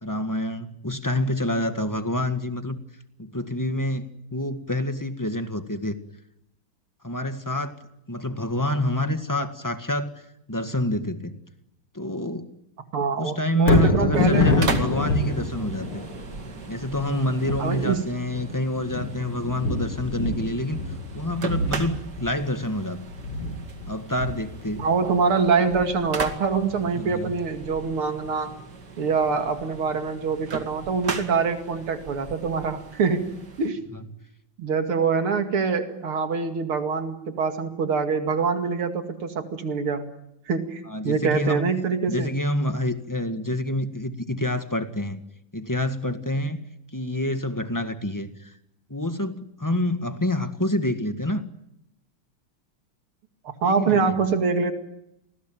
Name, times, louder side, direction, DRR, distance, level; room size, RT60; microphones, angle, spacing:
voice 1, 0.0-2.8 3.2-5.9 7.0-7.7 8.1-10.1 10.5-11.4 11.9-12.5 13.2-16.0 16.7-20.8 21.1-23.0 23.9-24.8 27.0-27.3 33.9-34.0 40.9-41.7 42.1-45.2 45.5-46.6 46.9-48.5 48.9-51.4 53.6-54.1, left 1 dB, 10° left, 8 dB, 1.6 m, -27 dB
voice 2, 12.9-14.6 17.6-18.0 24.8-28.5 29.0-33.8 34.6-40.1 40.5-42.3 53.4-54.7, right 5 dB, 80° right, 7 dB, 3.1 m, -24 dB
Thunder, 13.6-27.8 28.2-28.3, left 2 dB, 85° left, 4.7 m, -28 dB
sound 1, 14.1-33.7, right 4 dB, 50° right, 2.8 m, -37 dB
28.5 x 20.0 x 9.2 m, 0.82 s
omnidirectional pair, 2.4 m